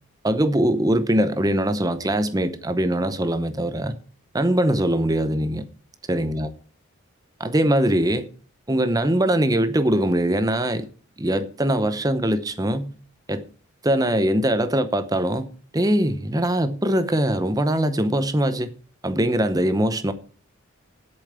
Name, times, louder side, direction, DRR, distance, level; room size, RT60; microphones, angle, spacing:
voice 1, 0.2-3.9 4.3-5.7 6.1-6.5 7.4-8.3 8.7-10.9 11.2-12.9 13.3-13.4 13.8-15.5 15.7-18.7 19.0-20.1, right 1 dB, 15° right, 0.7 m, -22 dB
8.4 x 7.1 x 8.6 m
head